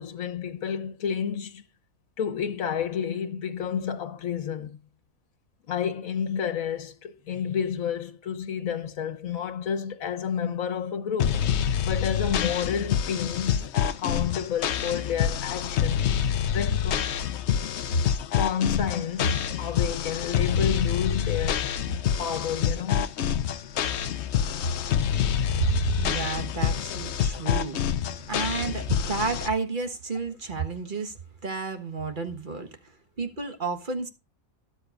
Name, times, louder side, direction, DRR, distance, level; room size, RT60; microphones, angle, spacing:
voice 1, 0.0-1.6 2.2-4.8 5.7-11.5 11.8-16.0 16.5-17.1 17.9-18.1 18.3-21.7 22.2-23.1, left 7 dB, 75° left, 1.6 m, -30 dB
sound 1, 11.2-29.5, left 9 dB, 60° left, 0.9 m, -27 dB
voice 2, 25.6-27.8 28.3-32.8 33.2-34.1, right 5 dB, 35° right, 1.5 m, -31 dB
13.0 x 12.0 x 2.5 m
omnidirectional pair, 1.4 m